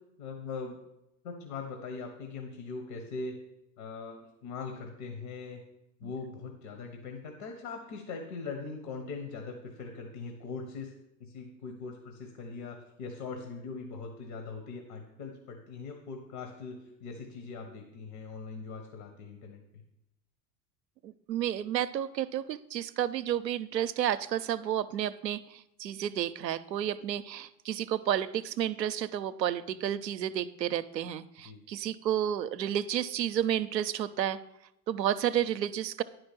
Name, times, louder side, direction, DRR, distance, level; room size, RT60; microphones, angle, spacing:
voice 1, 0.2-0.8 1.2-3.4 3.8-4.2 4.4-5.6 6.0-10.9 11.2-19.8 31.4-31.6, left 4 dB, 65° left, 3 dB, 1.6 m, -41 dB
voice 2, 21.0-34.4 34.9-36.0, right 10 dB, 90° right, 13 dB, 0.5 m, -31 dB
9.8 x 5.0 x 6.0 m, 0.84 s
hypercardioid pair, 80°, 49 cm